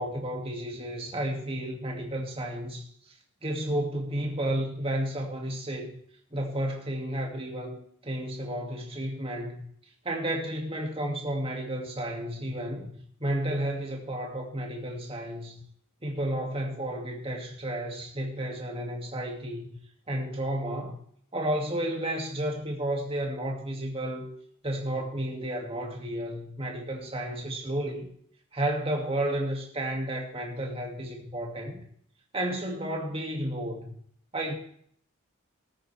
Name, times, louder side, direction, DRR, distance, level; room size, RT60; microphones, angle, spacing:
voice 1, 0.0-2.8 3.4-5.9 6.3-9.6 10.0-12.9 13.2-15.6 16.0-19.8 20.1-21.0 21.3-24.3 24.6-28.1 28.5-31.8 32.3-34.0 34.3-34.5, right 1 dB, 25° right, 0 dB, 2.2 m, -32 dB
19.0 x 8.8 x 3.4 m, 0.64 s
head